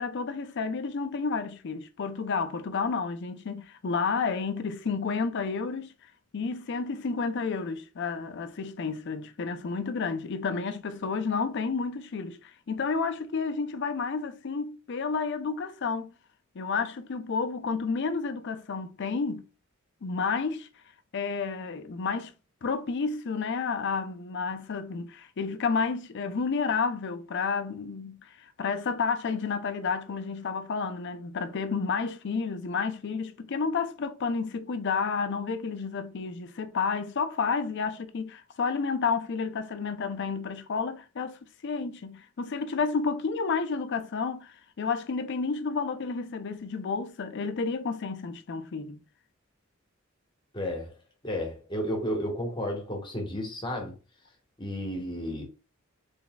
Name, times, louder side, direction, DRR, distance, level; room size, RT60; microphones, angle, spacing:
voice 1, 0.0-5.9 6.3-16.1 16.6-19.5 20.0-20.7 21.1-22.3 22.6-49.0, left 5 dB, 60° left, 0.5 m, -31 dB
voice 2, 50.5-50.9 51.2-53.9 54.6-55.4, equal, 25° left, 1.2 m, -32 dB
3.9 x 3.4 x 2.2 m
head